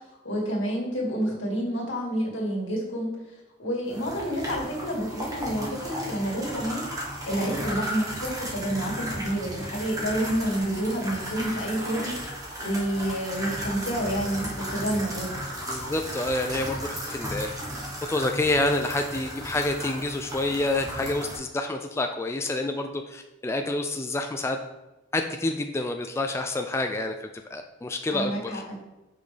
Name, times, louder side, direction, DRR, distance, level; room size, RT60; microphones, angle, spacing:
voice 1, 0.2-3.1 3.6-6.8 7.3-12.1 12.6-15.3 28.1-28.8, right 1 dB, 80° left, -3 dB, 2.1 m, -29 dB
sound 1, 3.9-21.4, equal, 20° right, 1.1 m, -35 dB
voice 2, 15.7-17.5 18.1-24.6 25.1-27.2 27.5-28.6, left 2 dB, 15° left, 4 dB, 0.3 m, -28 dB
6.0 x 5.3 x 3.3 m, 1.0 s
head